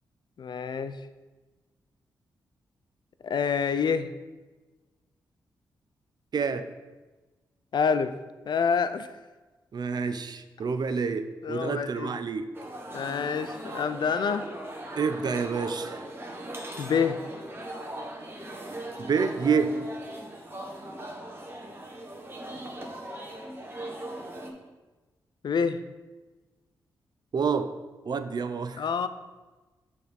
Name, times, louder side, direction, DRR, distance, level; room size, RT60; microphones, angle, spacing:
voice 1, 0.4-1.0 3.2-4.1 7.7-8.2 8.5-9.1 11.4-12.1 12.9-14.5 16.8-17.2 25.4-25.8 28.8-29.1, left 6 dB, 55° left, 12 dB, 0.4 m, -27 dB
voice 2, 6.3-6.7 9.7-12.5 15.0-16.0 19.0-19.8 27.3-27.7 28.0-29.1, right 5 dB, 50° right, 10 dB, 0.5 m, -28 dB
sound 1, 12.5-24.5, right 1 dB, 25° right, 1.2 m, -39 dB
6.7 x 3.5 x 4.1 m, 1.2 s
supercardioid pair, 40°, 9 cm